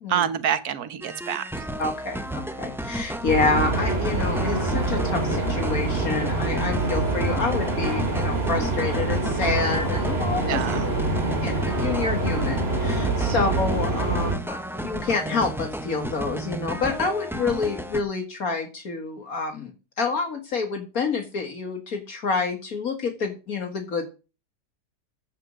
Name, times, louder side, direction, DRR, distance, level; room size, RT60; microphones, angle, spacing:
voice 1, 0.1-1.7 10.5-10.8, right 9 dB, 70° right, 1.5 m, -27 dB
sound 1, 1.0-18.0, right 1 dB, 5° right, 0.5 m, -33 dB
voice 2, 1.8-10.7 11.4-19.7 20.0-24.1, left 4 dB, 60° left, 2.1 m, -28 dB
sound 2, 3.3-14.3, right 2 dB, 40° right, 2.5 m, -25 dB
15.0 x 5.2 x 6.3 m
omnidirectional pair, 1.7 m